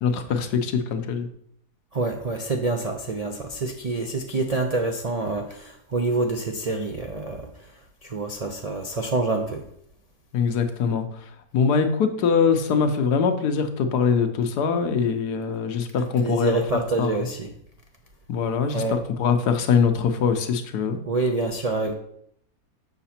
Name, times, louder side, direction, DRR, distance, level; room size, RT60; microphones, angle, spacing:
voice 1, 0.0-1.3 10.3-11.0 11.5-16.6 17.0-17.1 18.3-21.0, left 6 dB, 90° left, 7 dB, 1.4 m, -23 dB
voice 2, 1.9-9.6 16.0-17.5 18.7-19.0 21.0-21.9, right 3 dB, 70° right, 3 dB, 0.3 m, -27 dB
6.8 x 5.9 x 4.3 m, 0.70 s
omnidirectional pair, 1.6 m